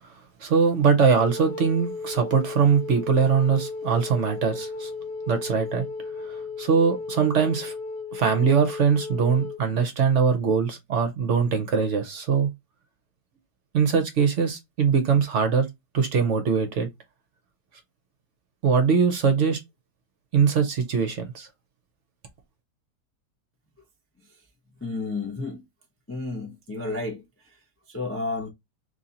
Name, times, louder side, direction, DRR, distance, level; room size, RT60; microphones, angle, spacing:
voice 1, 0.4-4.9 5.3-5.8 6.2-7.7 8.1-12.5 13.7-15.7 15.9-16.9 18.6-19.6 20.3-21.5, right 6 dB, 60° right, 0.9 m, -22 dB
Wind instrument woodwind instrument, 1.1-9.6, left 3 dB, 80° left, 1.3 m, -35 dB
voice 2, 24.8-25.6 26.1-27.2 27.9-28.5, left 3 dB, 15° left, 0.4 m, -31 dB
3.1 x 2.8 x 3.8 m
omnidirectional pair, 1.7 m